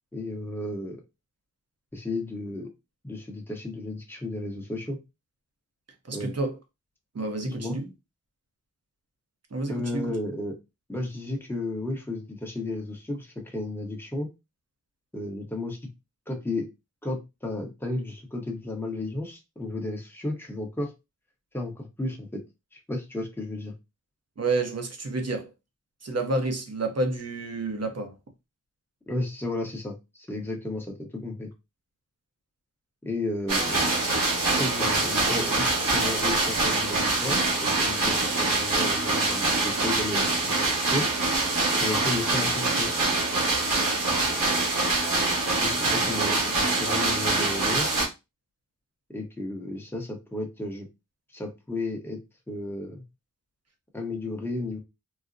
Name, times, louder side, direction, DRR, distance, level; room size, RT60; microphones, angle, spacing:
voice 1, 0.1-1.0 1.9-2.7 3.0-5.0 6.1-6.3 7.4-7.8 9.7-10.6 10.9-14.3 15.1-15.8 16.3-16.7 17.0-20.9 21.5-22.4 22.7-23.7 29.1-31.5 33.0-33.9 34.6-41.1 41.7-42.9 45.6-47.9 49.1-50.9 51.3-52.2 52.5-53.0 53.9-54.8, left 2 dB, 5° left, 0.8 m, -33 dB
voice 2, 6.1-6.6 7.1-7.9 9.5-10.1 24.4-25.5 26.0-28.1 46.0-46.1, right 2 dB, 50° right, 0.8 m, -29 dB
sound 1, 33.5-48.1, right 2 dB, 85° right, 1.4 m, -24 dB
3.9 x 2.1 x 2.5 m
wide cardioid pair, 75°, 32 cm